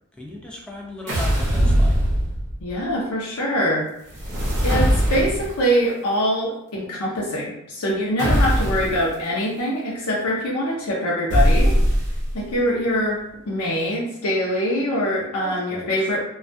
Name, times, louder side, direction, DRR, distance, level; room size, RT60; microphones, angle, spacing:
voice 1, 0.1-2.0 15.4-16.1, left 1 dB, 5° left, -2 dB, 0.3 m, -37 dB
sound 1, 1.1-2.7 4.1-5.6 8.2-9.0 11.3-12.4, equal, 55° right, 0.8 m, -20 dB
voice 2, 2.6-3.9 4.6-11.7 12.3-16.2, equal, 85° left, -4 dB, 0.5 m, -23 dB
2.3 x 2.2 x 2.5 m, 0.81 s
head